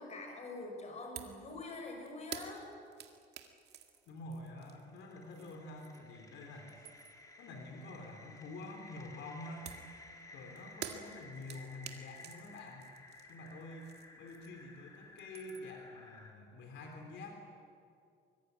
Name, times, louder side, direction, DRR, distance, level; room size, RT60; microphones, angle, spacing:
voice 1, 0.0-2.7, left 2 dB, 35° left, 2 dB, 6.0 m, -45 dB
sound 1, 1.2-1.4 1.7-6.2 6.5-7.3 9.7-14.8 15.0-15.8, right 8 dB, 55° right, 2.1 m, -50 dB
voice 2, 4.1-6.9 7.4-9.7 10.3-12.9 13.3-17.3, left 2 dB, 75° left, 3 dB, 3.6 m, -48 dB
sound 2, 4.4-16.3, left 3 dB, 20° left, 3.0 m, -56 dB
25.0 x 22.0 x 9.5 m, 2.4 s
cardioid pair, 165°, 20 cm